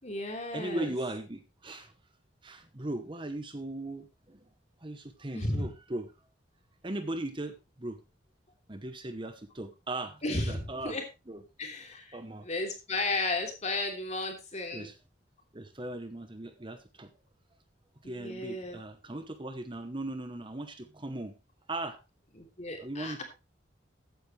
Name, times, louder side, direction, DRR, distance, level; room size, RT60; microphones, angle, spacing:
voice 1, 0.0-0.9 5.3-5.7 10.2-11.0 11.6-12.2 12.4-14.9 18.2-18.8 22.4-23.2, left 2 dB, 35° left, 3 dB, 3.1 m, -34 dB
voice 2, 0.5-1.9 2.4-4.5 4.8-6.1 6.8-8.0 8.7-11.0 11.3-11.4 12.1-12.5 14.7-15.0 15.5-17.1 18.0-21.3 21.7-22.0 22.8-23.2, right 1 dB, 25° right, 9 dB, 1.0 m, -38 dB
14.5 x 9.6 x 3.3 m, 0.27 s
head